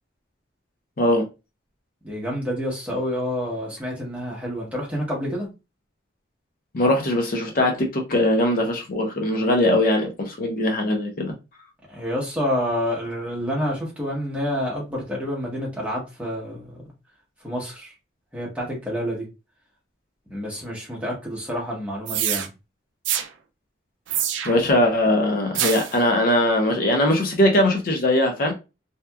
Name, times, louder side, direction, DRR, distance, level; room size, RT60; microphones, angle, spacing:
voice 1, 2.0-5.5 11.9-16.8 17.4-17.9 18.3-19.2 20.3-22.5, equal, 5° right, 0.9 m, -28 dB
voice 2, 6.7-11.3 24.4-28.5, left 1 dB, 50° left, 0.5 m, -21 dB
sound 1, 22.1-22.5 23.0-23.3 24.1-24.7 25.5-26.0, right 10 dB, 80° right, 0.4 m, -25 dB
2.8 x 2.3 x 2.2 m
head